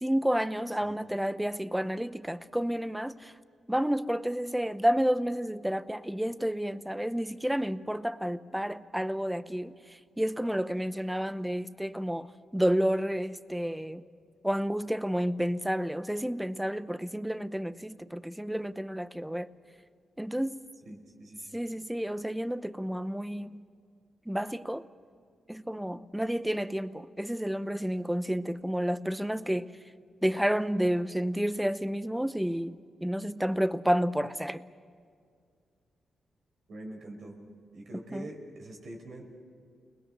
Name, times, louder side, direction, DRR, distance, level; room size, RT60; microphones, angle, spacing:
voice 1, 0.0-3.3 3.7-9.7 10.2-14.0 14.4-19.5 20.2-20.6 21.5-23.6 24.3-24.8 25.5-29.7 30.2-34.6 38.1-38.3, equal, 5° right, 0.8 m, -30 dB
voice 2, 20.9-21.6 36.7-37.4 37.7-39.3, right 1 dB, 70° right, 5.5 m, -44 dB
30.0 x 20.5 x 6.8 m
cardioid pair, 70°, 0 cm